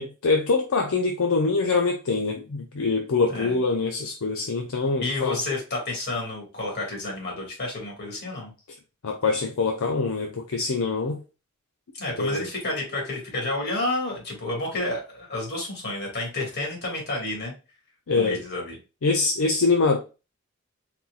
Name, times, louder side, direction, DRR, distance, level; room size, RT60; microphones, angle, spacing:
voice 1, 0.0-5.4 9.0-11.2 12.2-12.5 18.1-18.4 19.0-20.0, left 4 dB, 70° left, 0.5 m, -24 dB
voice 2, 5.0-8.5 11.9-17.5 18.2-18.8, left 2 dB, 50° left, 2.0 m, -30 dB
4.3 x 4.0 x 2.4 m
head